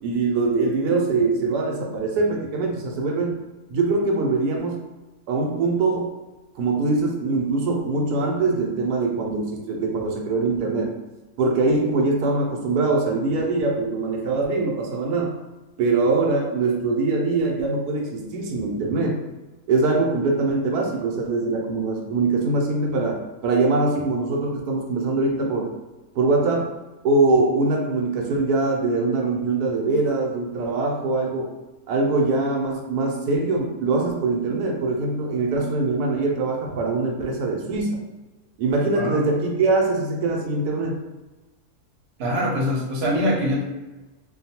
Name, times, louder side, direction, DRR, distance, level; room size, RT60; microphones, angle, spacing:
voice 1, 0.0-3.4 3.7-4.8 5.3-6.1 6.6-10.9 11.4-15.4 15.8-19.2 19.7-25.7 26.1-26.7 27.0-31.5 31.9-38.0 38.6-41.0, right 3 dB, 90° right, 1 dB, 1.1 m, -23 dB
voice 2, 42.2-43.6, equal, 55° right, -3 dB, 0.9 m, -23 dB
2.6 x 2.2 x 2.8 m, 1.1 s
omnidirectional pair, 1.6 m